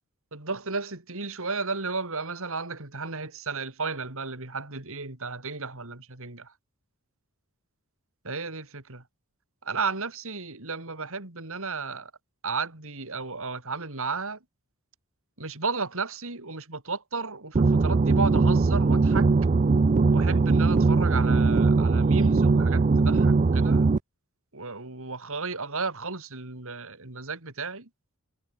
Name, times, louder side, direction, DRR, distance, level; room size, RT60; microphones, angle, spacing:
voice 1, 0.3-6.5 8.2-9.0 9.6-12.1 12.4-14.4 15.4-19.3 20.1-23.9 24.5-27.9, right 4 dB, 65° right, 3.8 m, -33 dB
sound 1, 17.5-24.0, right 3 dB, 35° right, 0.4 m, -20 dB
head